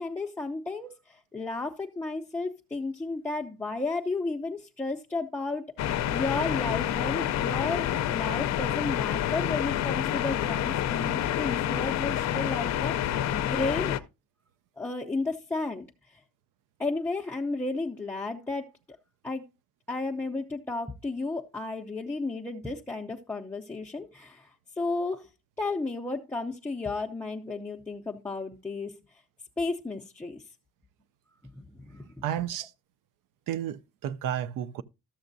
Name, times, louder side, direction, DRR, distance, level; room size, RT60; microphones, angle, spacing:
voice 1, 0.0-14.0 14.8-16.2 16.8-18.7 19.2-19.4 19.9-25.3 25.6-29.0 29.6-30.4 31.6-32.0 32.4-32.5, left 3 dB, 5° left, 0.5 m, -33 dB
sound 1, 5.8-14.0, left 11 dB, 55° left, 0.6 m, -28 dB
voice 2, 32.2-32.7 33.5-34.8, right 10 dB, 70° right, 0.6 m, -32 dB
13.0 x 7.0 x 2.6 m
cardioid pair, 145°, 33 cm